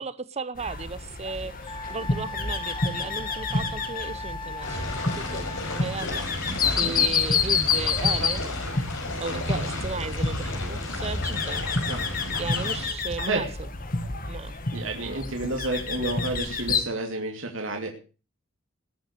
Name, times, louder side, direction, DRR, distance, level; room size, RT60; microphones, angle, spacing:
voice 1, 0.0-8.4 9.2-11.6 12.4-13.7 14.3-14.5, right 4 dB, 35° right, 0.7 m, -35 dB
sound 1, 0.6-16.8, left 4 dB, 45° left, 2.0 m, -29 dB
Wind instrument woodwind instrument, 1.7-6.0, left 2 dB, 25° left, 1.0 m, -38 dB
sound 2, 4.6-12.9, left 2 dB, 70° left, 5.6 m, -33 dB
voice 2, 6.6-6.9 9.5-9.8 11.9-12.0 13.2-13.5 14.7-17.9, right 2 dB, 80° right, 2.8 m, -30 dB
20.0 x 7.8 x 6.7 m
head